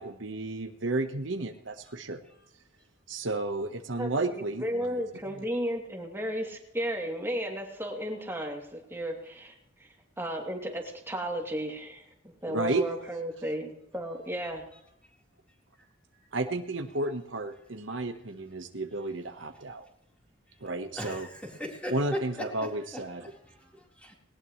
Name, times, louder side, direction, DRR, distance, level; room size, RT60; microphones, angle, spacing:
voice 1, 0.0-2.2 3.1-5.0 12.5-12.8 16.3-19.8 20.6-21.3 21.9-23.2, right 2 dB, 75° right, 6 dB, 1.3 m, -32 dB
voice 2, 4.0-9.5 9.8-14.6, equal, 15° right, 0 dB, 2.9 m, -34 dB
voice 3, 20.9-23.0 23.5-24.1, equal, 5° left, -2 dB, 4.0 m, -38 dB
20.0 x 18.5 x 3.2 m, 0.78 s
head